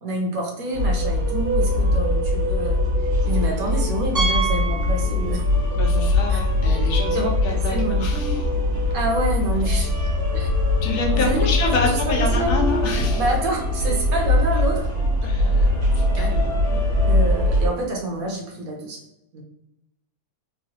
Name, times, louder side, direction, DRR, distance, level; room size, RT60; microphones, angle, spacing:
voice 1, 0.0-2.8 3.2-5.4 5.9-6.4 7.1-8.1 8.9-9.9 10.3-10.5 11.1-11.5 11.7-12.5 13.1-14.9 16.2-16.3 16.7-16.8 17.0-19.0 19.3-19.4, right 2 dB, 70° right, 1 dB, 1.1 m, -27 dB
sound 1, 0.7-17.7, left 1 dB, 90° right, 1.7 m, -21 dB
Piano, 4.1-5.7 6.0-6.2 6.8-6.9 7.1-7.2 9.3-9.4, right 4 dB, 25° right, 0.5 m, -28 dB
voice 2, 5.8-8.5 9.7-9.9 10.8-13.2 15.2-16.5, left 4 dB, 80° left, 0 dB, 1.3 m, -27 dB
sound 2, 9.8-13.6 14.1-14.2 14.7-14.8, left 5 dB, 60° left, 1.0 m, -41 dB
3.8 x 2.0 x 2.7 m, 0.84 s
omnidirectional pair, 1.6 m